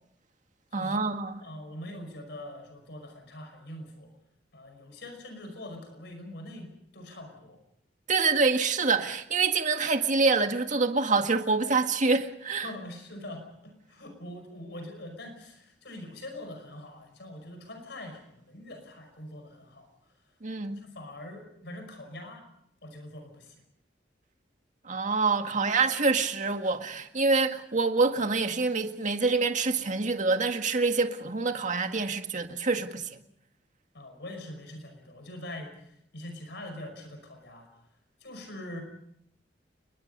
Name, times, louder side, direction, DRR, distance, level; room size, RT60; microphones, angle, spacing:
voice 1, 0.7-1.4 8.1-12.7 20.4-20.8 24.9-33.2, right 4 dB, 45° right, 1.9 m, -26 dB
voice 2, 1.4-4.1 4.5-7.6 12.6-19.9 20.8-22.5 22.8-23.6 33.9-37.7 38.2-38.8, left 1 dB, 70° left, 5.4 m, -43 dB
29.0 x 22.0 x 5.5 m
head